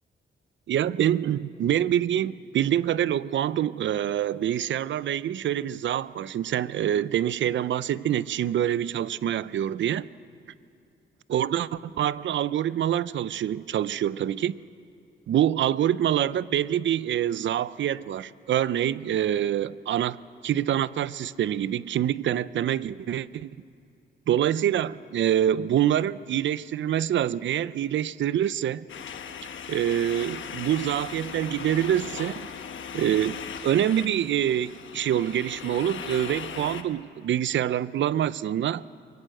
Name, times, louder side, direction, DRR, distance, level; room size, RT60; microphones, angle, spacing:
voice 1, 0.7-10.1 11.3-14.6 15.3-20.2 20.4-23.5 24.3-28.8 29.7-32.5 32.9-38.8, right 11 dB, 70° right, 0.5 m, -26 dB
sound 1, 28.9-36.8, left 7 dB, 75° left, 1.2 m, -38 dB
22.5 x 17.5 x 7.8 m
cardioid pair, 110°, 20 cm